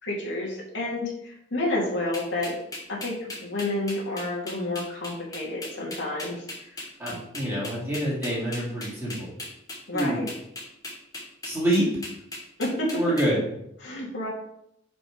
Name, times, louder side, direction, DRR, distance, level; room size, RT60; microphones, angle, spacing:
voice 1, 0.0-2.6 2.9-6.8 9.9-10.3 12.6-13.0 13.8-14.3, left 1 dB, 65° left, -4 dB, 2.4 m, -30 dB
sound 1, 2.1-13.3, left 2 dB, 20° left, 1.6 m, -37 dB
voice 2, 7.0-9.3 9.9-10.2 11.4-11.8 12.9-13.4, right 1 dB, 10° right, -7 dB, 2.6 m, -26 dB
5.8 x 5.2 x 5.0 m, 0.78 s
head